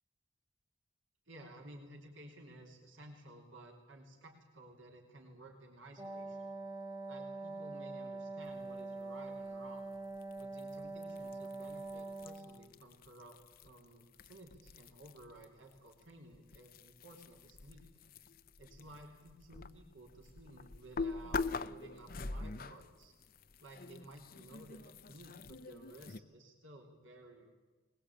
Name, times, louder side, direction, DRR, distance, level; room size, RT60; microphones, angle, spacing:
voice 1, 1.3-6.5 7.1-9.9 10.4-17.9 18.6-23.2 23.6-27.5, right 1 dB, 80° right, 2 dB, 3.4 m, -55 dB
Wind instrument woodwind instrument, 6.0-12.7, right 3 dB, 20° right, 1.4 m, -44 dB
sound 1, 10.2-15.5 15.7-26.2, left 4 dB, 45° left, 0.7 m, -45 dB
21.5 x 20.5 x 8.7 m, 1.3 s
head